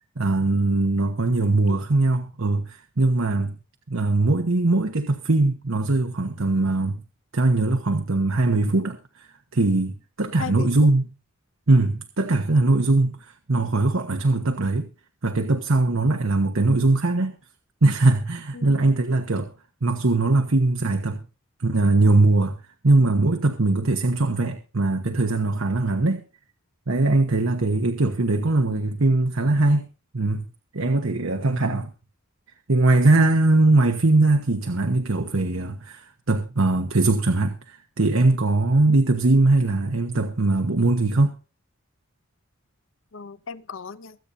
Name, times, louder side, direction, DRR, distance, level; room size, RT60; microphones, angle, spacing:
voice 1, 0.2-3.6 3.9-7.0 7.3-9.3 9.5-11.1 11.7-13.2 13.5-14.9 15.2-17.3 17.8-19.5 19.8-21.2 21.6-22.6 22.8-26.2 26.9-29.8 30.1-30.5 30.7-31.9 32.7-41.3, right 2 dB, 80° right, 1.2 m, -21 dB
voice 2, 1.4-1.8 10.4-10.9 18.5-18.9 28.6-28.8 43.1-44.2, left 5 dB, 70° left, 0.7 m, -36 dB
24.0 x 8.7 x 2.7 m
head